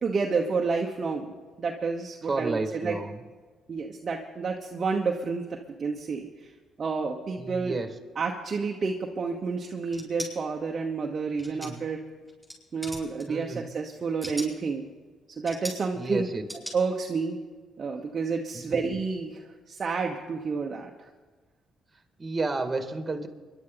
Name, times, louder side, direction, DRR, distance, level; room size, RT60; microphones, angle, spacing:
voice 1, 0.0-3.0 3.7-6.5 6.8-7.8 8.2-12.0 12.7-14.9 15.4-16.3 16.7-17.4 17.8-20.9, right 4 dB, 45° right, 1 dB, 1.1 m, -30 dB
voice 2, 2.2-3.2 7.4-7.9 11.4-11.8 13.3-13.7 15.9-16.4 18.5-18.8 22.2-23.3, right 3 dB, 25° right, 6 dB, 2.0 m, -31 dB
sound 1, 9.9-10.3 11.4-11.9 12.3-12.6 12.8-13.2 14.0-14.6 15.5-15.8 16.5-16.8, equal, 5° left, 6.5 m, -38 dB
26.0 x 11.0 x 4.0 m, 1.4 s
cardioid pair, 90°, 0 cm